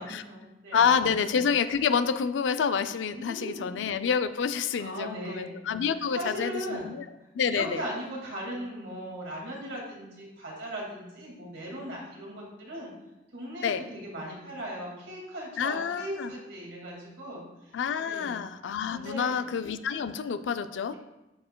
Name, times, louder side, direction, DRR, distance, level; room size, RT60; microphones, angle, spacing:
voice 1, 0.0-0.8 3.1-3.8 4.8-5.6 5.9-7.0 7.4-12.9 13.3-18.4 18.9-19.4, equal, 90° right, -3 dB, 2.0 m, -38 dB
voice 2, 0.7-7.0 7.3-7.8 13.6-13.8 15.6-16.3 17.7-21.0, left 6 dB, 85° left, 11 dB, 0.4 m, -28 dB
11.5 x 4.3 x 2.2 m, 0.96 s
head